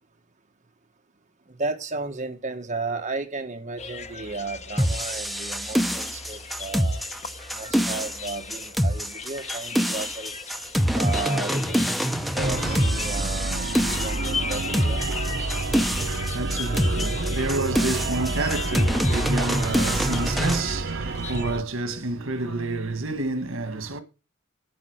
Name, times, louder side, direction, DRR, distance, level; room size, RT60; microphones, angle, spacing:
voice 1, 1.6-7.0 7.5-10.3 10.9-12.0 12.3-13.7 14.0-15.0, right 3 dB, 40° right, 1.7 m, -33 dB
sound 1, 3.8-21.6, left 5 dB, 35° left, 0.9 m, -38 dB
sound 2, 4.8-20.6, equal, ahead, 0.7 m, -25 dB
sound 3, 12.4-21.6, right 3 dB, 60° right, 0.9 m, -29 dB
voice 2, 15.8-24.0, right 2 dB, 85° right, 1.6 m, -29 dB
10.5 x 9.6 x 6.5 m
head